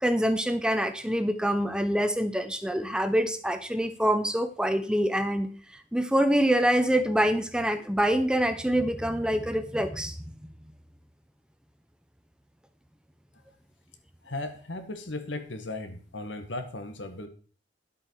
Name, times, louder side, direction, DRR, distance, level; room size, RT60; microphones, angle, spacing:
voice 1, 0.0-10.2, equal, 5° right, 10 dB, 0.7 m, -25 dB
voice 2, 14.2-17.3, left 2 dB, 75° left, 8 dB, 1.8 m, -36 dB
11.0 x 8.1 x 4.7 m, 0.41 s
head